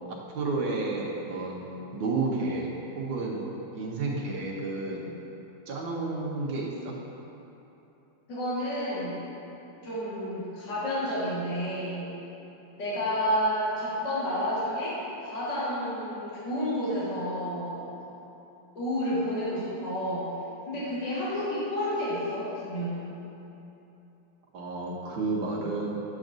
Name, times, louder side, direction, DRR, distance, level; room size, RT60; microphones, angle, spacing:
voice 1, 0.1-2.7 2.9-3.4 3.7-5.1 5.7-6.9 24.5-26.0, right 3 dB, 85° right, -3 dB, 1.7 m, -31 dB
voice 2, 8.3-9.3 9.8-12.1 12.8-15.0 15.2-17.9 18.8-20.3 20.7-23.1, equal, 65° left, -10 dB, 2.3 m, -30 dB
8.1 x 7.3 x 2.6 m, 3.0 s
omnidirectional pair, 2.1 m